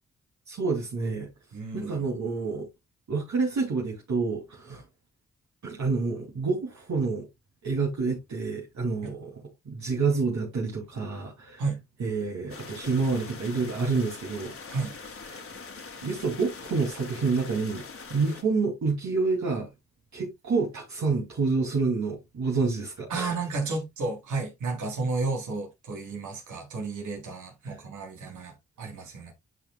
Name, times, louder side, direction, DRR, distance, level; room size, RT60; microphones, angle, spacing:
voice 1, 0.5-1.3 1.7-2.7 3.1-4.8 5.6-7.3 7.6-11.6 12.0-14.5 15.3-15.5 16.0-17.8 18.1-19.7 20.1-23.3 27.6-27.8, right 4 dB, 70° right, 2.8 m, -28 dB
voice 2, 1.5-2.1 9.0-9.1 11.6-11.8 14.7-14.9 23.1-29.3, right 3 dB, 85° right, 3.3 m, -32 dB
sound 1, 12.5-18.4, left 4 dB, 50° left, 1.9 m, -43 dB
11.5 x 5.9 x 2.2 m
cardioid pair, 55°, 29 cm